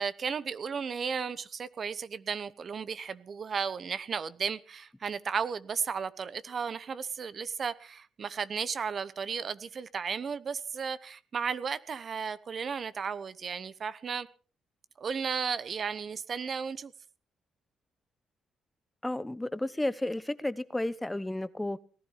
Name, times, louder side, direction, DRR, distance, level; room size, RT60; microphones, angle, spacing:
voice 1, 0.0-14.3 15.0-16.9, right 6 dB, 50° right, 1.0 m, -34 dB
voice 2, 19.0-21.8, left 1 dB, 10° left, 0.9 m, -32 dB
18.5 x 11.5 x 5.8 m
cardioid pair, 90°, 0 cm